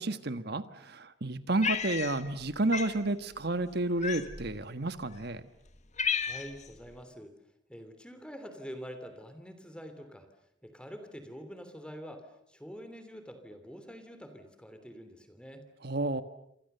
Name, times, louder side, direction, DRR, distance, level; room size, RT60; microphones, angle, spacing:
voice 1, 0.0-5.4 15.8-16.2, right 2 dB, 55° right, 11 dB, 1.5 m, -31 dB
Cat, 1.6-2.4 2.7-3.0 4.0-4.5 5.2-5.3 5.7-6.7, left 6 dB, 40° left, 1.7 m, -32 dB
voice 2, 6.1-7.3 7.7-10.3 10.6-15.7, equal, 5° left, 8 dB, 3.1 m, -46 dB
28.5 x 26.5 x 6.9 m, 0.77 s
head